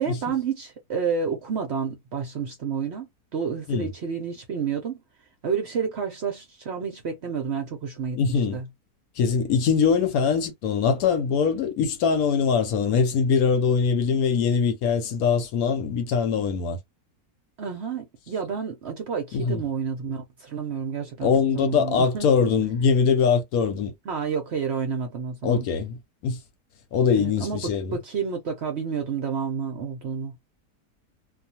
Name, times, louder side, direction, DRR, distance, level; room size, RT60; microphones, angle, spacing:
voice 1, 0.0-3.1 3.3-5.0 5.4-8.7 17.6-22.3 22.6-22.7 24.1-25.7 27.2-30.3, right 6 dB, 60° right, 0.7 m, -30 dB
voice 2, 8.2-8.6 9.2-16.8 19.3-19.6 21.2-23.9 25.4-26.0 26.2-26.4 26.9-28.0, left 6 dB, 70° left, 1.0 m, -22 dB
2.4 x 2.4 x 2.7 m
omnidirectional pair, 1.7 m